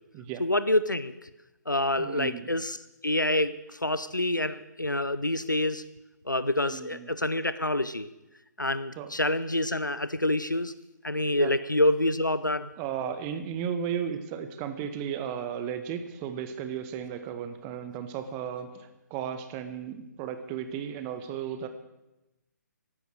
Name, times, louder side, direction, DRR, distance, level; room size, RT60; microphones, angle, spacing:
voice 1, 0.4-1.1 1.7-2.8 3.0-5.8 6.3-8.1 8.6-10.7 11.0-12.7, left 1 dB, 90° left, 14 dB, 0.7 m, -27 dB
voice 2, 2.0-2.5 6.7-7.1 9.0-9.1 11.4-11.5 12.8-21.7, right 8 dB, 20° right, 9 dB, 1.1 m, -35 dB
15.5 x 12.0 x 6.5 m, 0.97 s
figure-of-eight pair, 135°, 10 cm